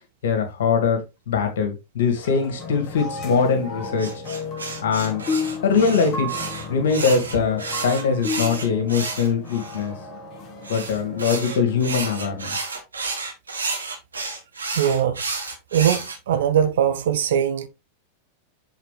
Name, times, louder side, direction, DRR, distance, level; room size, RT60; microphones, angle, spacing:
voice 1, 0.2-4.2 4.8-5.2 5.6-9.9 10.7-12.6, left 5 dB, 60° left, 2.0 m, -22 dB
sound 1, 2.2-12.4, left 3 dB, 35° left, 1.6 m, -33 dB
sound 2, 4.0-9.8 10.6-16.2, right 3 dB, 75° right, 1.7 m, -31 dB
voice 2, 14.8-15.2 15.7-17.7, right 9 dB, 60° right, 0.9 m, -21 dB
8.1 x 4.3 x 3.3 m
figure-of-eight pair, 90°, 0 cm